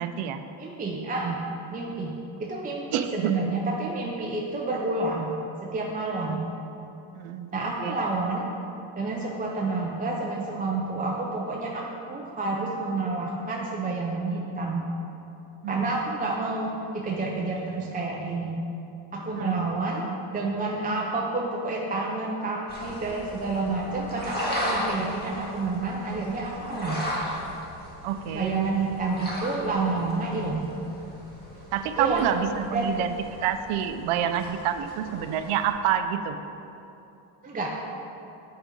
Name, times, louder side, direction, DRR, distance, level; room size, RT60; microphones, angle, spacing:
voice 1, 0.0-0.4 2.9-3.3 6.3-6.4 7.1-8.0 15.6-15.9 19.4-19.6 28.0-28.6 31.7-36.4, right 9 dB, 85° right, 8 dB, 0.6 m, -28 dB
voice 2, 0.6-1.4 1.7-2.1 2.4-5.4 5.6-6.4 7.5-8.5 9.0-14.9 15.7-18.6 19.1-20.1 20.3-27.0 28.3-30.7 32.0-32.3 32.7-32.9 37.4-37.7, right 3 dB, 20° right, -3 dB, 0.4 m, -29 dB
sound 1, 22.7-35.7, equal, 20° left, 1.3 m, -36 dB
7.8 x 4.9 x 5.1 m, 2.8 s
cardioid pair, 160°, 50 cm